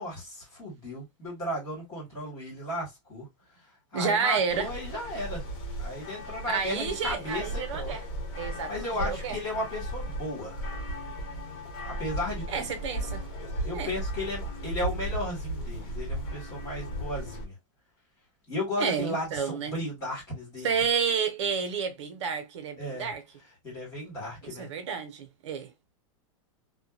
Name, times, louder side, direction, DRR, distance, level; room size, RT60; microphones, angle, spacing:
voice 1, 0.0-3.3 3.9-5.4 5.8-7.9 8.4-10.6 11.9-12.7 13.6-17.5 18.5-20.7 22.8-23.1 23.6-24.7, left 1 dB, 20° left, 1.5 m, -35 dB
voice 2, 3.9-4.7 6.5-8.0 8.3-9.4 12.5-13.2 13.7-13.9 18.8-19.7 20.6-23.2 24.4-25.7, right 6 dB, 60° right, 0.7 m, -30 dB
sound 1, 4.5-17.5, right 1 dB, 40° left, 1.0 m, -36 dB
2.7 x 2.2 x 2.3 m
supercardioid pair, 180°, 17 cm